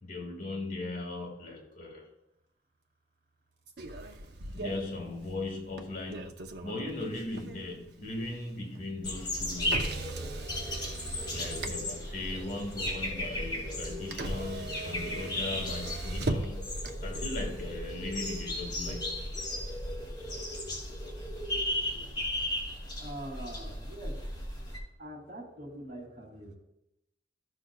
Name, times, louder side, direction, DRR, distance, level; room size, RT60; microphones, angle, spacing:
voice 1, 0.0-2.1 4.5-10.0 11.3-16.7 17.0-19.2, left 2 dB, 50° left, -1 dB, 1.9 m, -38 dB
Motor vehicle (road), 3.8-20.9, right 2 dB, 65° right, 0.8 m, -41 dB
sound 1, 9.0-24.8, left 1 dB, 25° left, 2.3 m, -35 dB
voice 2, 23.0-24.1 25.0-26.5, right 1 dB, 45° right, -2 dB, 2.9 m, -43 dB
14.5 x 6.2 x 2.3 m, 0.86 s
head